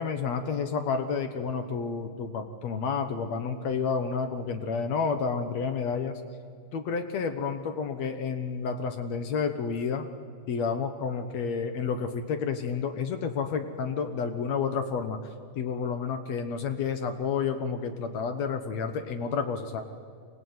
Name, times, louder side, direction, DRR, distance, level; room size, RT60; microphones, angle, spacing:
voice 1, 0.0-6.2 6.7-10.1 10.5-15.2 15.6-19.8, left 5 dB, 65° left, 7 dB, 1.8 m, -30 dB
23.5 x 18.0 x 9.4 m, 2.2 s
omnidirectional pair, 4.1 m